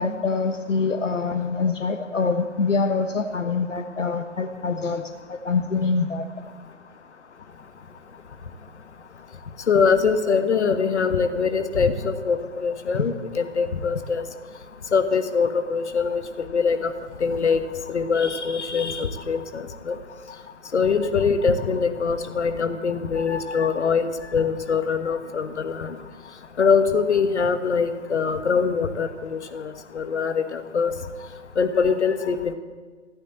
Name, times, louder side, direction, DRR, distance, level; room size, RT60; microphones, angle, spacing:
voice 1, 0.0-5.0 5.3-6.3 12.9-13.1, left 4 dB, 80° left, 7 dB, 1.1 m, -25 dB
voice 2, 9.7-14.2 14.9-16.9 17.2-17.6 17.9-20.0 20.7-26.0 26.6-30.9 31.6-32.5, left 5 dB, 65° left, 9 dB, 1.4 m, -23 dB
15.0 x 9.0 x 7.7 m, 1.4 s
figure-of-eight pair, 130°, 37 cm